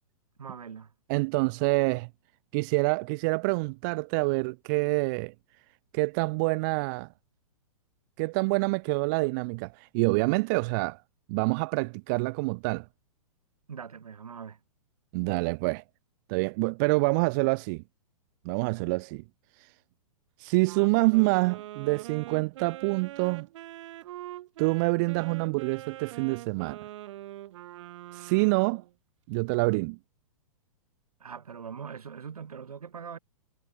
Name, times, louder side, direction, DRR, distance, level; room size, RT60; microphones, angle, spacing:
voice 1, 0.4-0.9 13.7-14.6 31.2-33.2, right 6 dB, 75° right, 1.9 m, -41 dB
voice 2, 1.1-2.1 2.5-5.3 5.9-7.1 8.2-11.0 11.3-12.9 15.1-15.8 16.3-17.8 18.4-19.2 19.6-19.7 20.4-23.5 24.6-26.8 28.1-28.8 29.3-30.0, right 28 dB, 35° right, 0.4 m, -26 dB
Wind instrument woodwind instrument, 20.6-28.9, right 14 dB, 55° right, 2.6 m, -43 dB
figure-of-eight pair, 115°, 19 cm